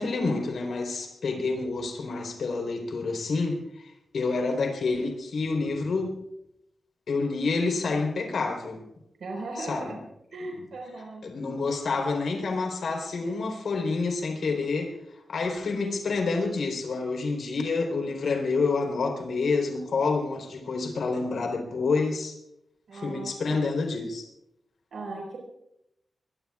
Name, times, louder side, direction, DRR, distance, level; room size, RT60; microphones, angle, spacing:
voice 1, 0.0-6.2 7.1-8.8 9.6-10.0 11.2-14.9 15.3-22.4 22.9-24.3, left 4 dB, 75° left, 3.9 m, -28 dB
voice 2, 9.2-10.0 10.3-11.2 22.9-23.6 24.9-25.4, right 2 dB, 85° right, 4.6 m, -37 dB
24.0 x 22.0 x 2.5 m
wide cardioid pair, 160°, 0 cm